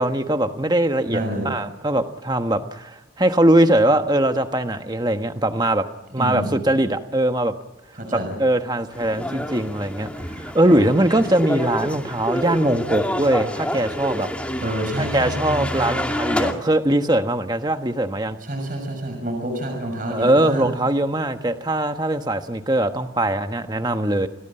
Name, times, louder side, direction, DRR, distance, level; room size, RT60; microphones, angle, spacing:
voice 1, 0.0-5.9 6.1-7.5 8.1-10.1 10.4-14.3 15.0-18.4 20.1-24.3, right 1 dB, 20° right, 7 dB, 1.3 m, -21 dB
voice 2, 1.1-1.6 6.2-6.6 7.9-8.3 14.6-15.9 18.4-20.7, right 1 dB, 45° right, 3 dB, 6.4 m, -28 dB
sound 1, 8.9-16.5, equal, 5° left, 2.4 m, -28 dB
29.5 x 19.0 x 8.9 m, 1.1 s
head